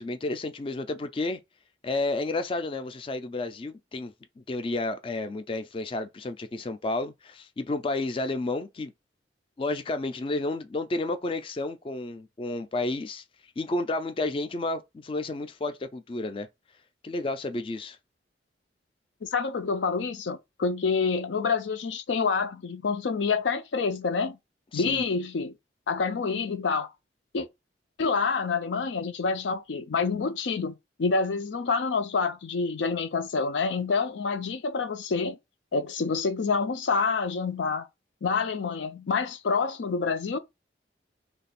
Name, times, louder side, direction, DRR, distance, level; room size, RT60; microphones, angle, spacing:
voice 1, 0.0-1.4 1.8-8.9 9.6-13.2 13.6-16.5 17.0-18.0 24.7-25.0, left 2 dB, 30° left, 0.3 m, -31 dB
voice 2, 19.2-24.4 24.7-25.5 25.9-26.9 27.3-27.5 28.0-35.4 35.7-37.9 38.2-40.4, left 4 dB, 90° left, 0.5 m, -27 dB
3.2 x 2.3 x 4.1 m
head